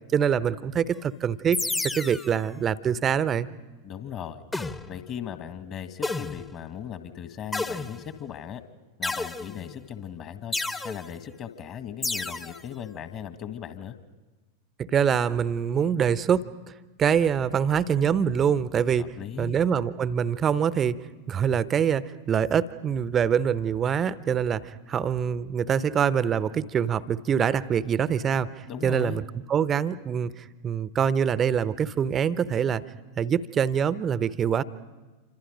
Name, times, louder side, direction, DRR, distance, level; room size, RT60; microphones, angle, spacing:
voice 1, 0.1-1.6 1.9-3.5 14.9-16.4 17.0-19.0 19.4-21.0 21.3-29.2 29.5-32.8 33.2-34.6, right 8 dB, 25° right, 16 dB, 0.8 m, -24 dB
sound 1, 1.5-2.4 4.5-5.1 6.0-6.6 7.5-8.2 9.0-9.8 10.5-11.1 12.0-12.6, left 3 dB, 10° left, 1.1 m, -31 dB
voice 2, 3.8-4.4 4.9-8.6 9.0-10.6 10.8-14.0 19.0-19.6 28.7-29.2, left 9 dB, 35° left, 9 dB, 1.8 m, -38 dB
28.0 x 26.0 x 5.2 m, 1.2 s
figure-of-eight pair, 90°, 0 cm